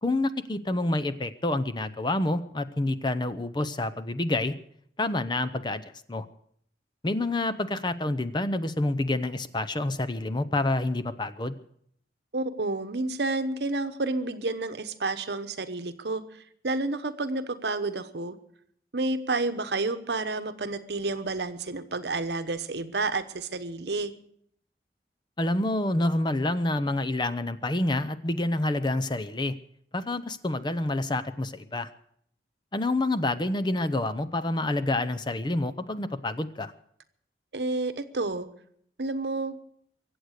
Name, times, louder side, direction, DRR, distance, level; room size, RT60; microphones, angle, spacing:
voice 1, 0.0-4.6 5.0-6.3 7.0-11.5 25.4-29.5 29.9-31.9 32.7-36.7, left 2 dB, 25° left, 12 dB, 0.7 m, -28 dB
voice 2, 12.3-18.4 18.9-24.1 37.5-38.5 39.0-39.6, right 3 dB, 70° right, 10 dB, 1.0 m, -30 dB
23.5 x 8.0 x 6.5 m, 0.66 s
head